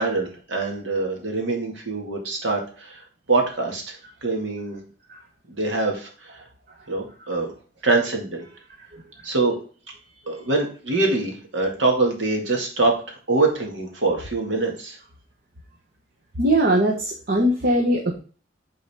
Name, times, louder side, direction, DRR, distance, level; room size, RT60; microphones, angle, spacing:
voice 1, 0.0-3.0 3.3-3.8 4.2-4.8 5.5-6.1 6.9-7.5 7.8-8.4 9.2-9.6 10.3-12.9 13.3-15.0, right 3 dB, 80° right, 1 dB, 1.9 m, -24 dB
voice 2, 16.4-18.2, right 1 dB, 55° right, 1 dB, 1.0 m, -20 dB
7.0 x 3.9 x 3.5 m, 0.39 s
head